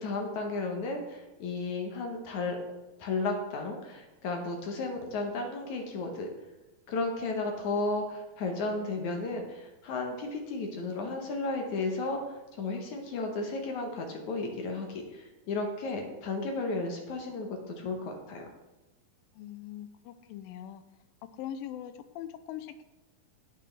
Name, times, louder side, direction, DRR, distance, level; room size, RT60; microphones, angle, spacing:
voice 1, 0.0-2.6 3.0-6.3 6.9-18.5, left 3 dB, 65° left, 2 dB, 2.4 m, -34 dB
voice 2, 19.3-20.8 21.4-22.8, left 10 dB, 85° left, 11 dB, 2.4 m, -41 dB
17.0 x 6.1 x 3.4 m, 1.1 s
omnidirectional pair, 4.0 m